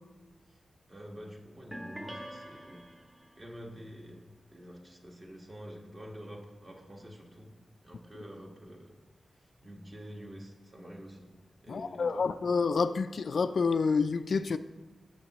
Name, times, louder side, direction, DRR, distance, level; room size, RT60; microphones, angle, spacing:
voice 1, 0.9-2.9 3.3-9.0 9.3-11.3 11.6-12.3, equal, 30° right, -1 dB, 1.6 m, -48 dB
sound 1, 1.7-3.5, equal, 15° right, 0.6 m, -45 dB
voice 2, 11.7-14.6, left 4 dB, 60° left, 10 dB, 0.3 m, -28 dB
18.5 x 6.9 x 3.0 m, 1.2 s
wide cardioid pair, 150°, 0 cm